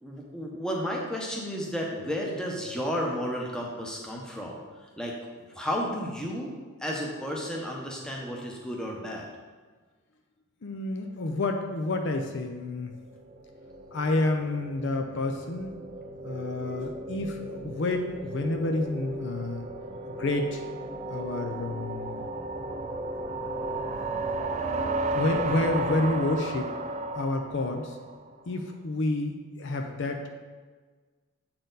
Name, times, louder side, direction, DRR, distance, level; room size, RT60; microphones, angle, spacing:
voice 1, 0.0-4.6 5.0-6.5 6.8-9.3, equal, 5° left, -2 dB, 0.8 m, -32 dB
voice 2, 10.6-12.9 13.9-15.7 16.2-19.7 20.2-20.6 21.1-22.2 23.4-23.5 25.1-26.7 27.1-28.0 28.5-30.3, left 2 dB, 55° left, 4 dB, 0.5 m, -29 dB
sound 1, 13.1-28.3, right 2 dB, 30° right, 0.3 m, -34 dB
8.0 x 4.3 x 3.9 m, 1.4 s
head